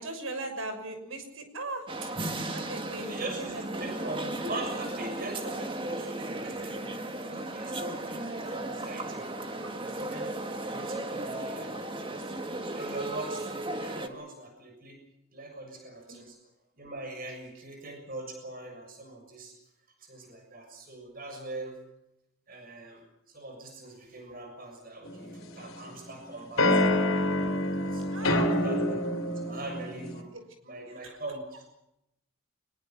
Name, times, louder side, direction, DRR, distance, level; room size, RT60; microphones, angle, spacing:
voice 1, 0.0-2.1 2.5-4.2 9.6-9.7 16.1-16.2 28.1-28.5 31.0-31.2, right 2 dB, 75° right, 7 dB, 6.4 m, -39 dB
sound 1, 1.9-14.1, right 2 dB, 25° right, 2.0 m, -35 dB
voice 2, 2.9-7.0 7.3-9.3 9.8-10.3 10.6-12.5 12.7-15.0 15.3-16.4 16.8-19.5 20.0-21.8 22.5-26.8 27.3-30.3 30.6-31.7, right 2 dB, 45° right, 4 dB, 6.9 m, -41 dB
sound 2, 25.0-25.9 26.6-30.2, left 1 dB, 80° left, 3.4 m, -27 dB
24.5 x 22.5 x 6.0 m, 0.81 s
head